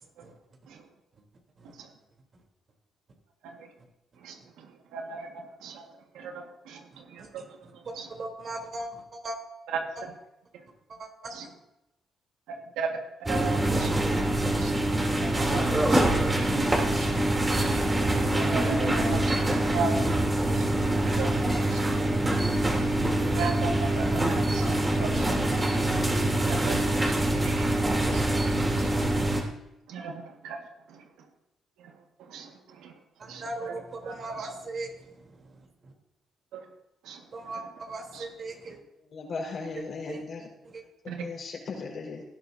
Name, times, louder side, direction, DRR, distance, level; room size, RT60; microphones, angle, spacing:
voice 1, 4.9-5.3 5.6-5.8 6.2-6.8 7.1-7.4 8.0-8.1 12.8-13.9 14.6-14.8 15.2-16.0 16.4-16.5 16.9-17.1 17.9-19.4 19.7-19.9 20.6-20.7 21.1-21.9 23.4-24.6 25.0-25.3 26.5-26.8 27.0-27.1 27.4-27.6 28.1-28.2 28.8-28.9 29.9-30.6 32.3-32.5 32.8-32.9 33.3-33.4 34.0-34.1 36.5-36.6 37.1-37.2 41.1-41.3, right 4 dB, 90° right, 3 dB, 1.8 m, -35 dB
voice 2, 7.6-9.4 10.0-10.1 10.9-11.3 19.2-19.3 33.2-35.9 37.3-38.8 40.1-40.2 40.6-40.8, right 2 dB, 50° right, 1 dB, 3.5 m, -39 dB
sound 1, 13.3-29.4, right 1 dB, 20° right, 3.2 m, -25 dB
voice 3, 39.1-40.5 41.0-42.2, left 4 dB, 55° left, -1 dB, 4.7 m, -37 dB
18.5 x 11.5 x 2.8 m, 0.87 s
cardioid pair, 90°, 0 cm